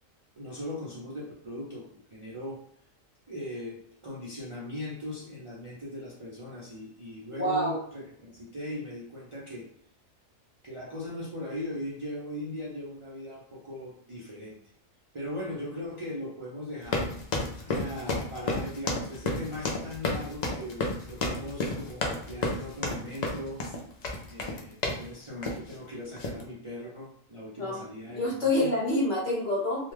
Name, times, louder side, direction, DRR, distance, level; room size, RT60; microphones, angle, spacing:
voice 1, 0.3-2.6 3.3-9.7 10.6-14.6 15.1-17.2 17.6-23.6 24.3-28.7, left 1 dB, 35° right, -6 dB, 0.5 m, -39 dB
voice 2, 7.4-7.8 27.6-27.8 28.1-29.9, left 1 dB, 60° left, -3 dB, 1.2 m, -27 dB
sound 1, 16.8-25.1 25.4-25.7 26.2-26.4, left 2 dB, 80° left, 0.3 m, -31 dB
2.4 x 2.3 x 3.2 m, 0.63 s
omnidirectional pair, 1.4 m